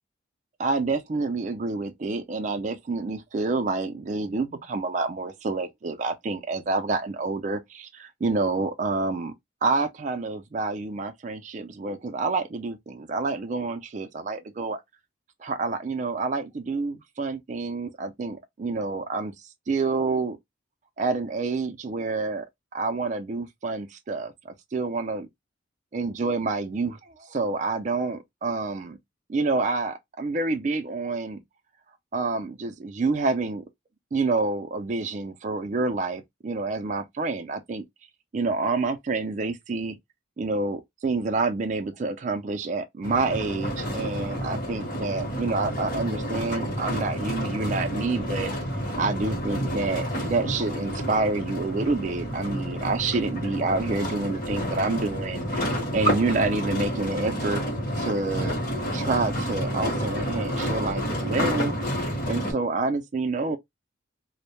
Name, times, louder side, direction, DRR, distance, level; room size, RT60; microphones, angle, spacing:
voice 1, 0.6-9.3 9.6-14.8 15.4-19.3 19.7-20.4 21.0-22.4 22.7-24.3 24.7-25.3 25.9-29.0 29.3-31.4 32.1-33.6 34.1-37.8 38.3-40.0 40.4-48.5 49.0-57.6 58.0-58.6 58.9-61.7 62.3-63.6, right 3 dB, 40° right, 0.4 m, -28 dB
sound 1, 43.0-62.5, equal, 45° left, 0.9 m, -29 dB
2.1 x 2.1 x 2.9 m
head